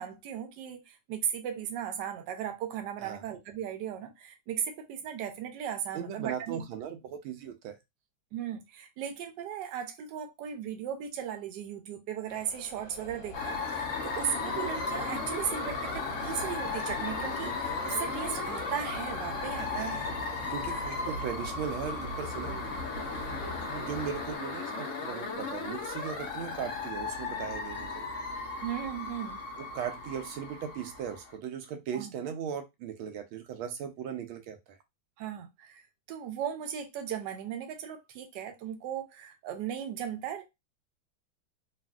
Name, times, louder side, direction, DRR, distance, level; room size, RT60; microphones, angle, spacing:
voice 1, 0.0-6.6 8.3-20.0 20.4-20.9 28.6-29.4 31.9-32.1 35.2-35.8 36.1-40.5, right 9 dB, 70° right, 1.2 m, -37 dB
voice 2, 5.9-7.8 19.6-22.7 23.7-28.1 29.6-34.8, right 8 dB, 90° right, 1.4 m, -38 dB
sound 1, 12.3-24.4, left 1 dB, 45° left, 1.1 m, -42 dB
sound 2, 13.3-31.3, left 4 dB, 75° left, 0.7 m, -36 dB
3.4 x 2.4 x 2.3 m
omnidirectional pair, 2.2 m